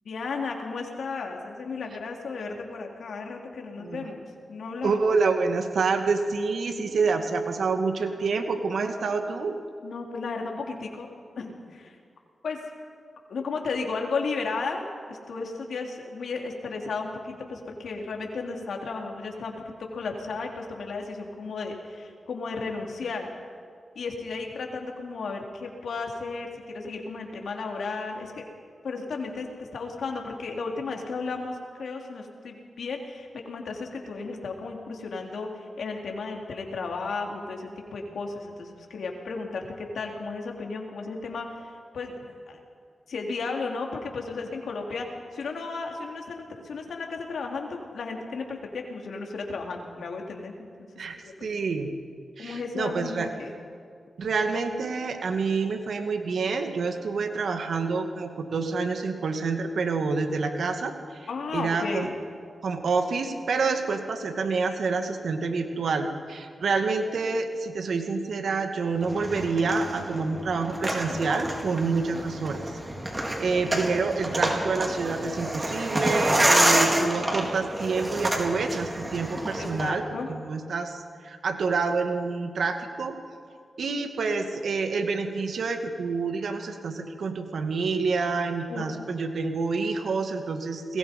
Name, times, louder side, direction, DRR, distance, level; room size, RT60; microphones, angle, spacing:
voice 1, 0.1-5.0 9.8-11.1 11.4-12.0 12.4-12.6 13.3-19.5 19.9-23.3 24.0-28.5 28.8-42.6 43.1-50.5 50.8-51.5 52.4-53.5 61.3-62.1 71.1-71.2 79.6-80.3 88.7-88.9, left 4 dB, 80° left, 2 dB, 3.6 m, -34 dB
voice 2, 4.8-9.5 51.0-51.9 52.4-53.3 54.2-62.1 62.6-72.8 73.4-80.0 80.3-83.1 83.8-91.0, right 4 dB, 80° right, 6 dB, 2.3 m, -28 dB
sound 1, 69.0-79.9, right 1 dB, 25° right, 4.7 m, -28 dB
30.0 x 21.5 x 5.5 m, 2.2 s
cardioid pair, 50°, 0 cm